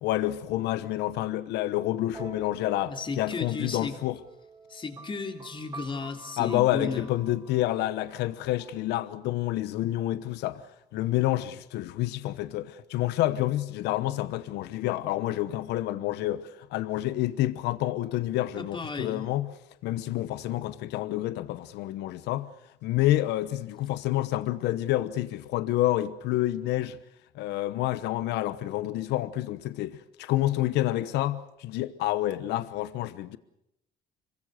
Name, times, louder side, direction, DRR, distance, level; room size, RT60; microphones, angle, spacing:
voice 1, 0.0-4.2 6.4-10.6 10.9-19.5 19.8-22.5 22.8-27.0 27.3-33.4, left 14 dB, 85° left, 1.0 m, -28 dB
sound 1, 2.1-9.7, right 3 dB, 20° right, 2.7 m, -48 dB
voice 2, 2.9-4.0 4.7-7.1 18.6-19.2, left 4 dB, 30° left, 3.3 m, -34 dB
26.0 x 23.0 x 6.6 m
cardioid pair, 110°, 17 cm